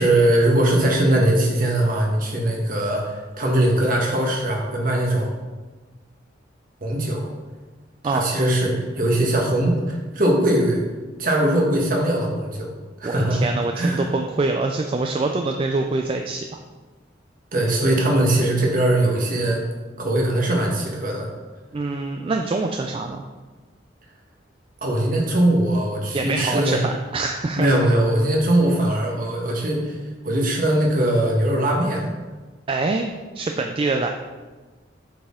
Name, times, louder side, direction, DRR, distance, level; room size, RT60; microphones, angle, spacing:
voice 1, 0.0-5.3 6.8-7.3 8.0-10.9 11.2-12.7 13.0-13.4 13.7-14.1 17.5-19.6 20.0-21.3 24.8-26.8 27.6-30.0 30.2-32.1, right 1 dB, 50° right, -1 dB, 1.3 m, -20 dB
voice 2, 13.0-16.4 21.7-23.2 26.1-27.9 32.7-33.1 33.3-34.1, right 3 dB, 30° right, 4 dB, 0.3 m, -25 dB
7.6 x 4.3 x 3.6 m, 1.3 s
head